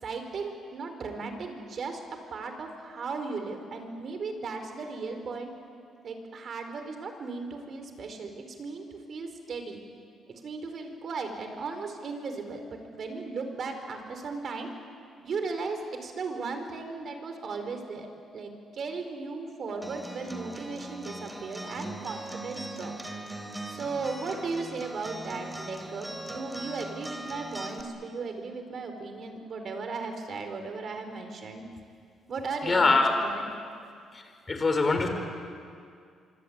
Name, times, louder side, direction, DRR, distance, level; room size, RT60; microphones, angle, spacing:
voice 1, 0.0-2.0 2.3-5.5 6.0-9.8 10.4-14.7 15.2-18.1 18.3-22.9 23.7-31.6 32.3-33.4, right 4 dB, 55° right, 6 dB, 4.5 m, -36 dB
Acoustic guitar, 19.8-27.8, right 1 dB, 10° right, 3.6 m, -40 dB
voice 2, 32.6-33.1 34.1-34.2 34.5-35.1, left 3 dB, 30° left, 5 dB, 5.0 m, -23 dB
26.0 x 24.5 x 8.9 m, 2.3 s
cardioid pair, 90°, 0 cm